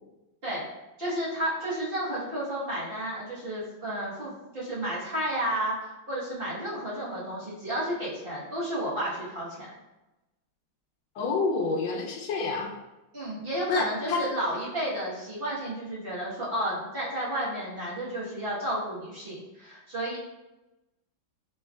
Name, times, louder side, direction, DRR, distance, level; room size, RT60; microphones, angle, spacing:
voice 1, 1.0-9.7 13.1-20.2, right 1 dB, 35° right, -8 dB, 1.2 m, -32 dB
voice 2, 11.2-12.7 13.7-14.3, left 4 dB, 85° left, 0 dB, 1.4 m, -28 dB
5.3 x 3.1 x 2.3 m, 1.0 s
omnidirectional pair, 2.1 m